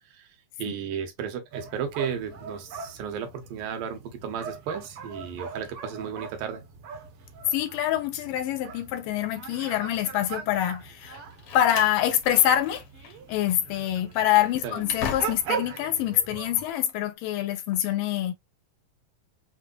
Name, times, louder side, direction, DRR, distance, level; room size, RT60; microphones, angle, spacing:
voice 1, 0.6-6.6 14.6-14.8, right 8 dB, 80° right, 2.7 m, -34 dB
sound 1, 1.5-16.7, right 6 dB, 65° right, 1.5 m, -40 dB
voice 2, 7.5-11.2 11.5-12.8 13.3-18.3, left 12 dB, 80° left, 2.4 m, -25 dB
Slam, 11.1-13.1 13.4-13.6 14.1-15.7, left 7 dB, 65° left, 1.5 m, -37 dB
6.7 x 2.7 x 2.4 m
omnidirectional pair, 4.0 m